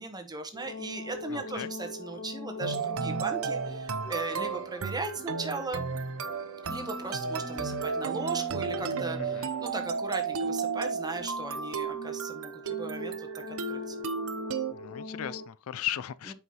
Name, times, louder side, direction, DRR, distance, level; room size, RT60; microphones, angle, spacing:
voice 1, 0.0-5.8 6.6-14.0, right 3 dB, 20° right, 1.2 m, -38 dB
sound 1, 0.5-15.5, equal, 40° left, 1.6 m, -42 dB
voice 2, 1.3-1.7 9.3-9.5 14.7-16.3, left 11 dB, 70° left, 0.4 m, -36 dB
sound 2, 2.6-14.7, right 5 dB, 65° right, 0.7 m, -33 dB
8.1 x 5.6 x 2.9 m
head